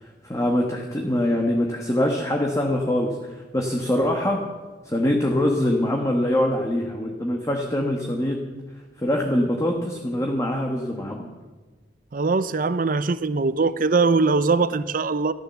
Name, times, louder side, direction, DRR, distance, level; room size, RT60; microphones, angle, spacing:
voice 1, 0.2-3.2 3.5-4.4 4.8-8.4 9.0-11.3, left 1 dB, 20° left, 1 dB, 1.4 m, -23 dB
voice 2, 12.1-15.3, right 4 dB, 50° right, 15 dB, 0.6 m, -21 dB
14.0 x 12.0 x 7.1 m, 1.3 s
head